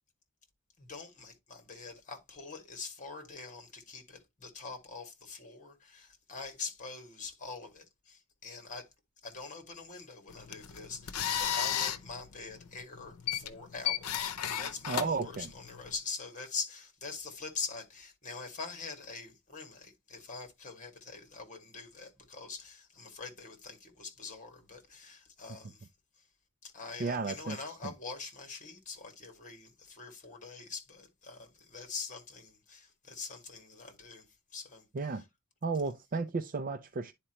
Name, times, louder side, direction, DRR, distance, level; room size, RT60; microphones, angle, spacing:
voice 1, 0.8-8.9 9.2-25.9 26.2-26.3 26.6-35.2, left 4 dB, 35° left, 2.0 m, -44 dB
sound 1, 10.3-15.9, left 9 dB, 85° left, 0.7 m, -35 dB
voice 2, 14.9-15.5 27.0-27.6 27.8-27.9 34.9-35.2 35.6-37.1, right 4 dB, 40° right, 0.4 m, -33 dB
9.9 x 4.4 x 3.0 m
head